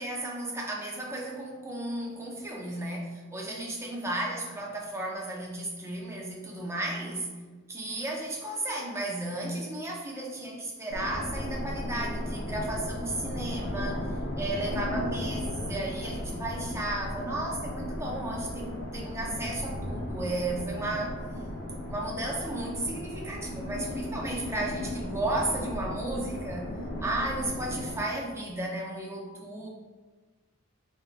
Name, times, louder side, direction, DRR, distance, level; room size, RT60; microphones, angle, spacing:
voice 1, 0.0-7.4 7.7-14.1 14.4-21.2 21.9-26.7 27.0-29.7, right 1 dB, 15° right, -2 dB, 0.6 m, -34 dB
sound 1, 10.9-28.0, left 1 dB, 45° left, 0.6 m, -35 dB
4.4 x 3.5 x 2.5 m, 1.3 s
head